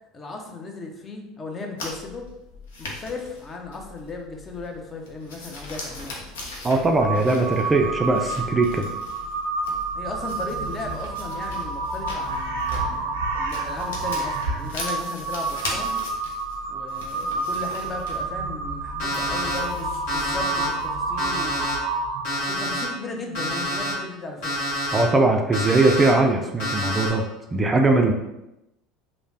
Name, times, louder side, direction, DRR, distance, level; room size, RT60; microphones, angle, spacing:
voice 1, 0.1-2.3 2.8-6.2 10.0-15.9 16.7-21.7 22.5-24.5, left 3 dB, 30° left, 2 dB, 0.6 m, -36 dB
sound 1, 1.8-21.0, left 2 dB, 80° left, 0.5 m, -40 dB
voice 2, 6.6-8.9 24.9-28.1, right 2 dB, 25° right, 3 dB, 0.3 m, -20 dB
Crow, 7.0-22.5, right 3 dB, 80° right, 0.5 m, -29 dB
Alarm, 19.0-19.6 20.1-20.7 21.2-21.7 22.2-22.8 23.3-23.9 24.4-25.0 25.5-26.1 26.6-27.1, equal, 60° left, 1.2 m, -27 dB
3.1 x 2.0 x 2.7 m, 0.90 s
hypercardioid pair, 75°, 0 cm